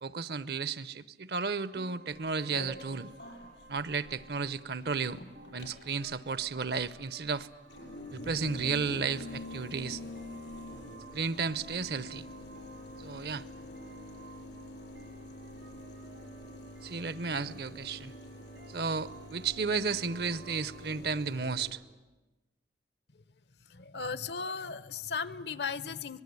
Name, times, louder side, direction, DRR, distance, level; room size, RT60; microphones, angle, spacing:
voice 1, 0.0-3.1 3.7-5.2 5.5-7.5 8.1-10.0 11.1-12.3 13.0-13.5 16.8-18.1 18.7-21.8, right 5 dB, 65° right, 18 dB, 0.8 m, -33 dB
sound 1, 1.4-21.0, right 3 dB, 80° right, 2.1 m, -55 dB
sound 2, 2.1-21.7, left 1 dB, 90° left, 6.4 m, -46 dB
voice 2, 23.6-26.2, left 5 dB, 70° left, 17 dB, 0.9 m, -36 dB
25.5 x 19.5 x 9.5 m, 1.1 s
head